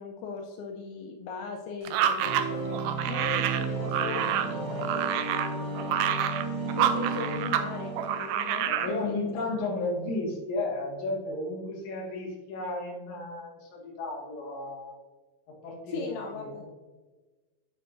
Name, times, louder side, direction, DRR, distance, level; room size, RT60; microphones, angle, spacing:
voice 1, 0.0-2.6 3.1-6.0 6.6-9.2 9.5-9.6 15.9-16.6, left 5 dB, 85° left, 2 dB, 2.5 m, -39 dB
sound 1, 1.9-7.7 8.0-8.9, right 10 dB, 85° right, 1.9 m, -28 dB
sound 2, 2.2-9.1, right 3 dB, 55° right, 3.5 m, -34 dB
voice 2, 8.7-14.9 15.5-16.6, left 2 dB, 55° left, -3 dB, 3.0 m, -33 dB
9.0 x 7.6 x 2.6 m, 1.2 s
omnidirectional pair, 4.6 m